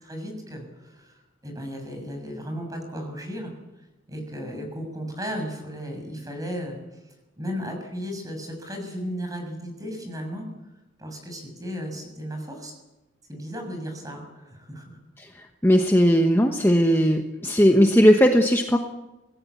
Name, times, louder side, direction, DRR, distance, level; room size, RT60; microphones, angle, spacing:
voice 1, 0.0-3.5 4.1-6.8 7.1-10.4 11.0-12.7 13.3-15.0, equal, 20° right, 3 dB, 6.8 m, -35 dB
voice 2, 15.2-18.8, equal, 10° left, 3 dB, 1.1 m, -18 dB
26.0 x 17.5 x 8.3 m, 1.0 s
head